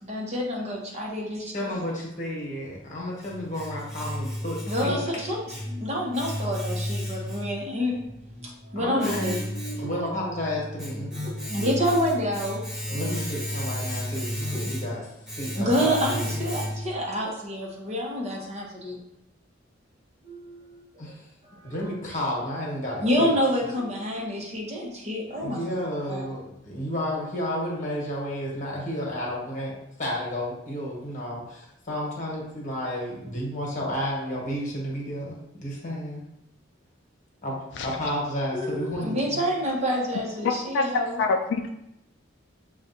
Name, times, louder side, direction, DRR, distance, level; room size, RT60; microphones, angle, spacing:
voice 1, 0.0-1.7 4.7-8.0 8.4-9.9 11.1-13.2 14.4-14.6 15.6-19.0 20.2-20.8 23.0-25.8 26.1-26.2 38.5-41.2, equal, 35° right, -2 dB, 0.9 m, -28 dB
voice 2, 1.5-5.0 5.5-5.6 8.7-11.1 12.9-15.1 15.3-16.2 21.0-21.2 21.6-23.3 25.3-29.7 30.0-36.2 37.4-39.4, equal, 40° left, -3 dB, 1.3 m, -32 dB
Domestic sounds home sounds, 2.7-17.1, left 1 dB, 5° right, 0.8 m, -34 dB
voice 3, 40.4-41.7, left 4 dB, 60° left, 5 dB, 0.3 m, -25 dB
6.6 x 2.4 x 2.7 m, 0.82 s
head